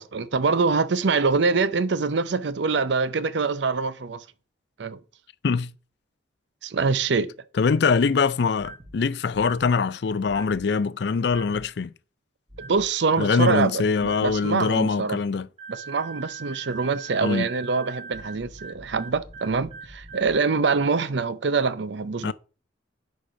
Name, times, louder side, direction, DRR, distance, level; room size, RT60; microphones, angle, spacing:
voice 1, 0.0-4.2 4.8-5.0 6.6-7.3 12.6-13.7 14.0-15.2 15.7-22.3, right 4 dB, 65° right, 0.6 m, -24 dB
voice 2, 7.6-11.9 13.2-15.5 17.2-17.5 22.2-22.3, left 5 dB, 55° left, 0.4 m, -23 dB
sound 1, 8.6-8.9 9.3-9.7 10.3-10.6 11.3-11.7 12.5-12.9 14.0-14.4 15.6-20.4, right 4 dB, 30° right, 1.4 m, -42 dB
6.3 x 4.8 x 5.5 m
head